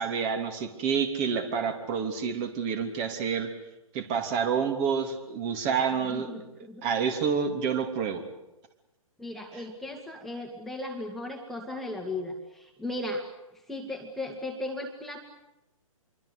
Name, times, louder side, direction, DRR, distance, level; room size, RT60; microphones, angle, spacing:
voice 1, 0.0-3.5 3.9-6.3 6.8-8.2, right 6 dB, 30° right, 6 dB, 3.1 m, -28 dB
voice 2, 6.1-6.9 9.2-13.3 13.7-15.2, left 2 dB, ahead, 0 dB, 2.3 m, -36 dB
27.0 x 23.5 x 8.2 m, 0.95 s
hypercardioid pair, 135°, 18 cm